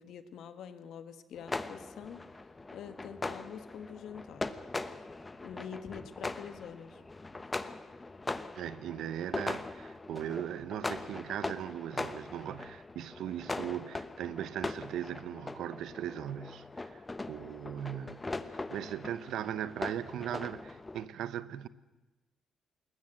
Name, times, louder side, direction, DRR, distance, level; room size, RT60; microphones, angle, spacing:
voice 1, 0.0-2.4 2.7-4.5 4.8-5.0 5.4-7.0, left 8 dB, 75° left, 1.6 m, -46 dB
sound 1, 1.4-21.1, left 2 dB, 20° left, 1.1 m, -41 dB
voice 2, 8.5-17.0 17.3-18.2 18.5-21.7, right 10 dB, 80° right, 0.8 m, -39 dB
21.0 x 19.5 x 7.7 m
cardioid pair, 90°, 0 cm